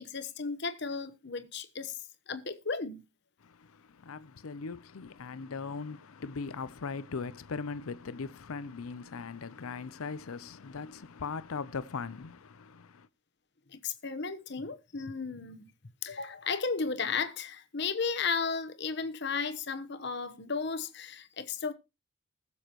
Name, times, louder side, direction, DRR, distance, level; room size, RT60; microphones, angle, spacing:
voice 1, 0.0-2.0 2.3-3.0 13.7-15.7 16.0-21.7, left 5 dB, 50° left, 1.1 m, -34 dB
voice 2, 3.4-13.1, left 4 dB, 80° left, 0.6 m, -39 dB
21.0 x 7.1 x 3.0 m
head